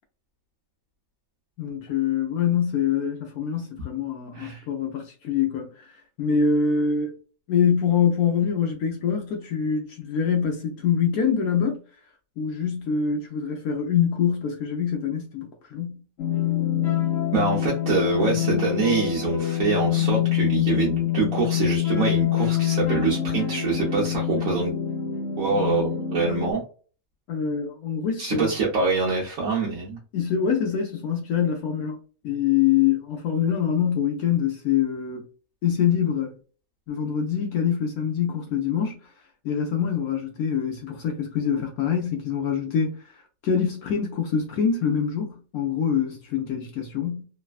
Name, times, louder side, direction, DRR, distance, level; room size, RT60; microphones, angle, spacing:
voice 1, 1.6-7.1 7.5-11.8 12.4-16.0 27.3-28.5 30.1-32.0 32.2-35.3 35.6-36.3 36.9-39.1 39.4-47.2, left 7 dB, 70° left, 0.9 m, -25 dB
voice 2, 4.3-4.6 17.3-24.7 25.4-26.6 28.2-30.0, right 4 dB, 55° right, 1.0 m, -25 dB
sound 1, 16.2-26.5, left 11 dB, 90° left, 0.5 m, -25 dB
3.2 x 2.1 x 2.3 m
omnidirectional pair, 2.0 m